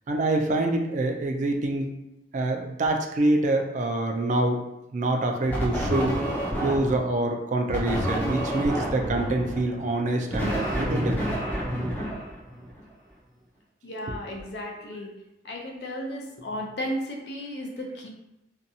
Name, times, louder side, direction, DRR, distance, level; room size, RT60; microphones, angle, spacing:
voice 1, 0.1-1.9 2.3-4.6 4.9-6.2 6.6-11.4, right 2 dB, 45° right, 3 dB, 0.3 m, -26 dB
sound 1, 5.5-7.1 7.7-12.8, equal, 10° left, 0.5 m, -29 dB
voice 2, 13.8-15.1 15.4-18.1, equal, 65° left, 0 dB, 0.5 m, -34 dB
2.6 x 2.3 x 2.7 m, 0.90 s
head